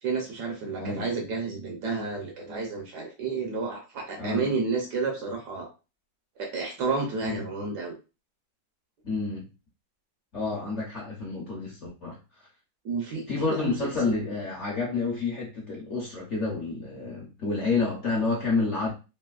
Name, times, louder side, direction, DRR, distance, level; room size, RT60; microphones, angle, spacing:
voice 1, 0.0-5.7 6.4-7.9 12.8-13.7 14.1-14.2, right 4 dB, 70° right, 1 dB, 1.1 m, -31 dB
voice 2, 4.2-4.5 7.2-7.5 9.0-9.5 10.3-12.2 13.3-18.9, left 4 dB, 55° left, -4 dB, 0.8 m, -29 dB
3.4 x 2.5 x 2.3 m, 0.31 s
omnidirectional pair, 2.1 m